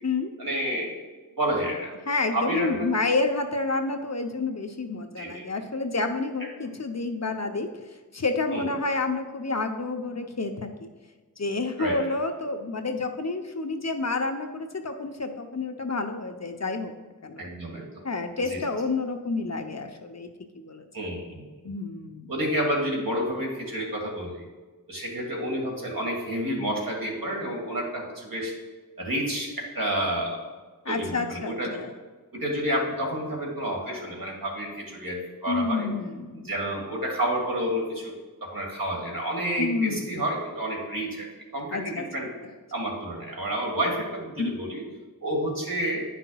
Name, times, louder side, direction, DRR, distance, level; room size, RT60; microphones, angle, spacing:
voice 1, 0.4-0.9 1.4-1.9 2.3-2.9 5.2-5.5 8.5-8.6 11.8-12.0 17.4-18.0 18.5-18.6 20.9-21.4 22.3-24.5 24.9-28.5 29.0-30.4 30.9-31.7 32.3-35.9 36.4-38.1 38.4-42.3 42.7-44.8 45.2-46.0, right 1 dB, 70° right, -1 dB, 1.8 m, -29 dB
voice 2, 2.1-10.9 11.4-16.9 17.2-17.5 18.0-20.3 20.5-20.9 21.6-22.3 30.8-31.9 35.5-36.5 39.6-40.1 41.7-42.1 44.4-44.6, left 3 dB, 50° left, 5 dB, 0.7 m, -29 dB
10.0 x 5.7 x 2.3 m, 1.3 s
wide cardioid pair, 40°, 35 cm